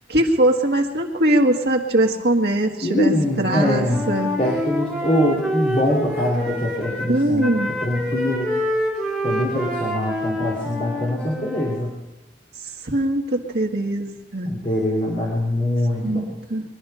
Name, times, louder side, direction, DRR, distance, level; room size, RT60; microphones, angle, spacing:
voice 1, 0.1-4.4 7.1-7.8 12.8-14.5 16.0-16.6, right 1 dB, 70° right, 1 dB, 1.8 m, -21 dB
voice 2, 2.8-4.1 4.4-7.5 7.8-8.5 9.2-11.9 14.4-16.3, left 1 dB, 35° left, -5 dB, 2.8 m, -23 dB
Wind instrument woodwind instrument, 3.4-7.1 7.4-11.8, left 1 dB, ahead, 3.7 m, -27 dB
22.5 x 11.5 x 5.6 m, 1.1 s
head